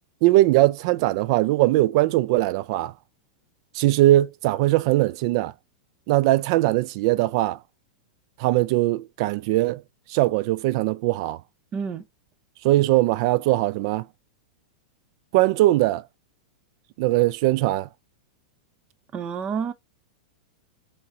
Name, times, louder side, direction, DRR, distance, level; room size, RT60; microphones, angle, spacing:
voice 1, 0.2-2.9 3.8-5.5 6.1-7.6 8.4-9.8 10.1-11.4 12.6-14.0 15.3-16.0 17.0-17.9, right 17 dB, 55° right, 0.3 m, -20 dB
voice 2, 11.7-12.0 19.1-19.7, right 6 dB, 30° right, 0.7 m, -29 dB
5.5 x 2.8 x 2.8 m
hypercardioid pair, 115°, 4 cm